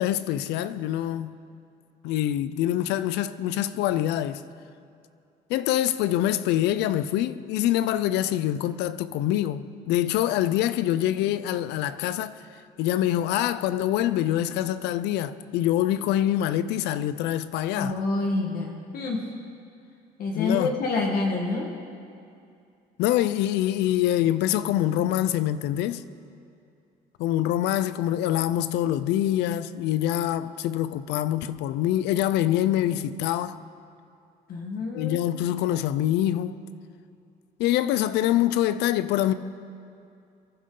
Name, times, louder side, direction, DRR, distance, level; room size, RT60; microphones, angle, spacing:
voice 1, 0.0-1.3 2.0-4.4 5.5-12.3 12.8-17.9 20.3-20.7 23.0-26.0 27.2-33.6 34.9-36.6 37.6-39.3, left 12 dB, 85° left, 0.6 m, -25 dB
voice 2, 17.8-19.2 20.2-21.7 34.5-35.1, left 3 dB, 60° left, 1.7 m, -27 dB
23.5 x 11.0 x 3.9 m
cardioid pair, 110°, 17 cm